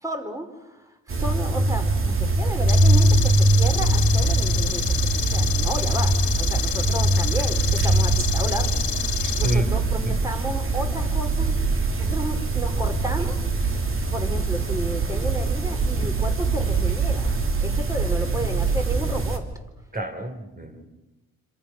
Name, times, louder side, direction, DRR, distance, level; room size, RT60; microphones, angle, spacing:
voice 1, 0.0-11.6 12.0-13.5 14.1-19.5, equal, 10° right, 5 dB, 4.1 m, -33 dB
sound 1, 1.1-19.4, right 2 dB, 45° right, 3.1 m, -22 dB
sound 2, 2.7-9.5, left 13 dB, 75° left, 1.1 m, -29 dB
voice 2, 9.4-10.2 19.9-20.9, right 1 dB, 30° right, 6 dB, 3.9 m, -29 dB
27.0 x 27.0 x 6.3 m, 1.0 s
cardioid pair, 90°, 30 cm